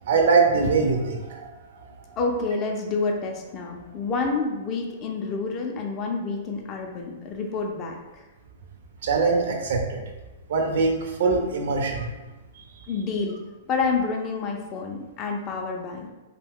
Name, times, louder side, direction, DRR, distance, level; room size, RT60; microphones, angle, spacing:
voice 1, 0.1-1.5 9.0-10.0 10.5-12.1, right 4 dB, 70° right, 2 dB, 0.6 m, -22 dB
voice 2, 2.2-8.2 12.9-13.4 13.7-16.1, left 4 dB, 30° left, 1 dB, 0.4 m, -28 dB
2.7 x 2.1 x 3.5 m, 1.1 s
hypercardioid pair, 140°, 0 cm